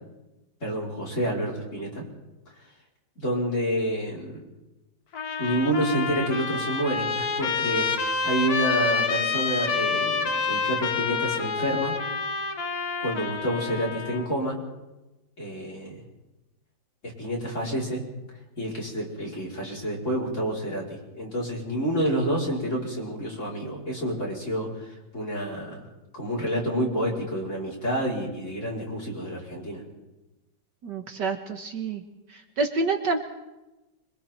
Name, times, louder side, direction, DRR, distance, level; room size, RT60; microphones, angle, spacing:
voice 1, 0.6-2.0 3.2-4.4 5.4-11.9 13.0-14.6 15.4-16.0 17.0-18.0 18.6-25.9 26.1-29.8, equal, 35° left, -4 dB, 5.6 m, -29 dB
Trumpet, 5.1-14.3, left 5 dB, 55° left, 1.8 m, -28 dB
voice 2, 30.8-32.0 32.3-33.2, right 3 dB, 65° right, 4 dB, 2.0 m, -28 dB
26.0 x 23.0 x 4.6 m, 1.0 s
omnidirectional pair, 2.1 m